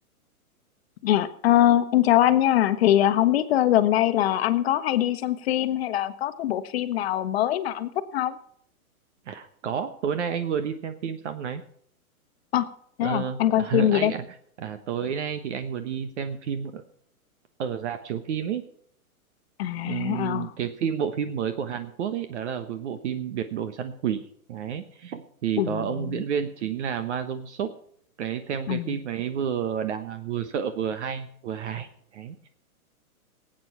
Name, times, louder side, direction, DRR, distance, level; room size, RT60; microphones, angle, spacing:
voice 1, 1.0-8.4 12.5-12.7 13.0-14.1 19.6-20.5 25.6-26.2 28.7-29.0, left 12 dB, 45° left, 11 dB, 1.2 m, -23 dB
voice 2, 9.3-11.6 13.0-14.2 14.6-16.8 17.6-18.6 19.8-24.2 24.5-27.7 28.2-32.5, right 8 dB, 50° right, 9 dB, 1.2 m, -30 dB
17.5 x 8.9 x 5.6 m, 0.64 s
hypercardioid pair, 155°, 44 cm